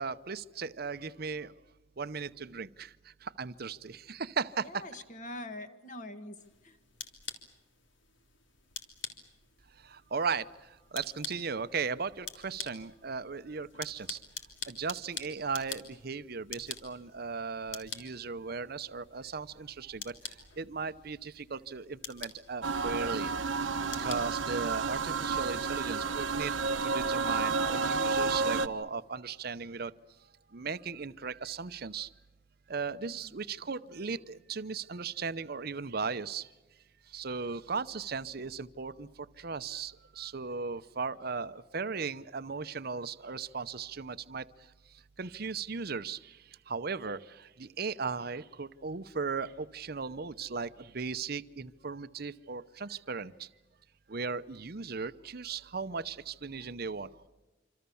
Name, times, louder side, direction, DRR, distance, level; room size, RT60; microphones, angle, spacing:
voice 1, 0.0-1.5 2.0-2.9 3.2-4.8 9.9-10.5 10.9-14.2 14.7-20.1 20.6-23.3 24.0-26.5 26.8-29.9 30.5-32.1 32.7-36.5 37.1-39.1 39.4-44.4 45.2-46.4 46.7-53.5 54.1-57.1, right 5 dB, 55° right, 14 dB, 0.8 m, -37 dB
voice 2, 4.6-6.8 33.2-33.3, left 1 dB, 40° left, 9 dB, 1.8 m, -44 dB
sound 1, 6.4-25.2, left 7 dB, 80° left, 3.2 m, -47 dB
sound 2, 22.6-28.7, right 4 dB, 90° right, 1.1 m, -31 dB
26.5 x 26.5 x 7.1 m, 1.2 s
head